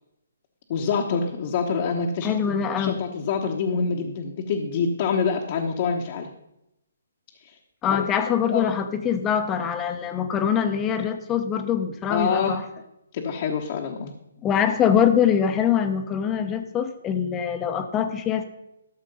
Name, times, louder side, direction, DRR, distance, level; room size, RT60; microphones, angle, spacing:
voice 1, 0.7-6.3 7.4-7.6 7.9-8.0 8.5-8.7 12.1-12.6 13.1-14.1, left 5 dB, 40° left, 0 dB, 1.1 m, -26 dB
voice 2, 2.2-3.0 7.8-12.6 14.4-18.4, left 8 dB, 15° left, 8 dB, 0.9 m, -23 dB
13.0 x 6.5 x 5.4 m, 0.87 s
hypercardioid pair, 150°, 0 cm